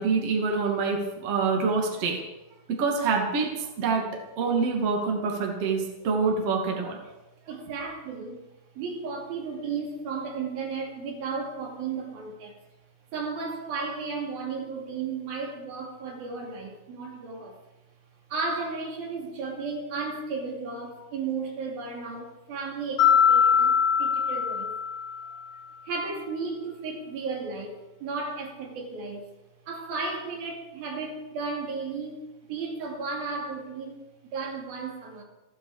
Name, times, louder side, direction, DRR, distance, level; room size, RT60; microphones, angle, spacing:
voice 1, 0.0-2.2 2.7-7.0, right 4 dB, 45° right, 0 dB, 3.0 m, -26 dB
voice 2, 7.5-8.4 8.8-12.5 13.1-17.6 18.3-24.8 25.8-29.2 29.7-35.2, right 4 dB, 70° right, 0 dB, 4.4 m, -34 dB
Mallet percussion, 23.0-25.4, left 7 dB, 35° left, 3.6 m, -22 dB
28.5 x 10.0 x 4.9 m, 1.0 s
omnidirectional pair, 4.5 m